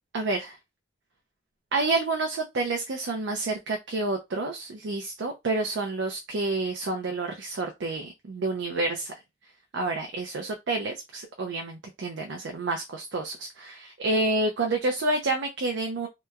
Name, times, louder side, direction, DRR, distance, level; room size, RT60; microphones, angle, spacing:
voice 1, 0.1-0.6 1.7-9.1 9.7-16.1, right 2 dB, 75° right, 3 dB, 0.5 m, -29 dB
2.8 x 2.2 x 2.3 m, 0.21 s
head